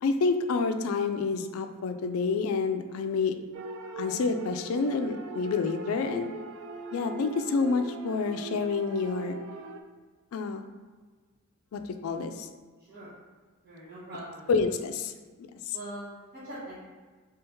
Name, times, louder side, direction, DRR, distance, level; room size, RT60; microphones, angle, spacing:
voice 1, 0.0-3.3 4.0-6.3 6.9-9.4 10.3-10.7 11.7-12.5 14.5-15.1 15.4-15.8, left 4 dB, 75° left, 8 dB, 0.3 m, -28 dB
sound 1, 3.5-9.8, right 4 dB, 70° right, 0.3 m, -40 dB
voice 2, 13.6-14.5 15.7-16.1 16.4-16.8, right 1 dB, 45° right, -13 dB, 1.2 m, -41 dB
3.4 x 3.3 x 3.0 m, 1.4 s
head